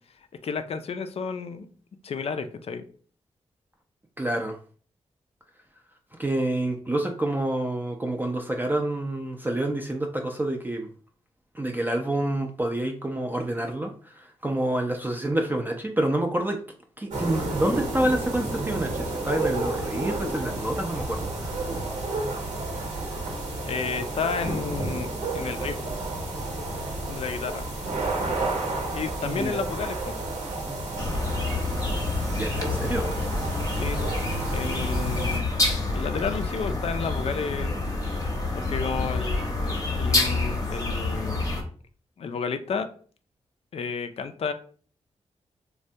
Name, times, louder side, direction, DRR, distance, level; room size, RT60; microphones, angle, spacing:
voice 1, 0.4-1.7 2.0-2.8 23.6-25.9 27.1-27.7 28.9-30.2 33.7-35.5 35.9-37.7 38.5-41.4 42.2-42.9 43.7-44.5, left 5 dB, 55° left, 9 dB, 0.4 m, -32 dB
voice 2, 4.2-4.6 6.2-10.9 11.6-13.9 14.4-16.6 17.0-21.5 29.2-29.6 32.3-33.1, right 1 dB, 15° right, 2 dB, 0.4 m, -27 dB
sound 1, 17.1-35.4, right 2 dB, 85° right, 1.0 m, -31 dB
sound 2, 31.0-41.6, left 2 dB, 30° left, 0.7 m, -28 dB
3.2 x 2.2 x 2.7 m, 0.44 s
cardioid pair, 75°, 12 cm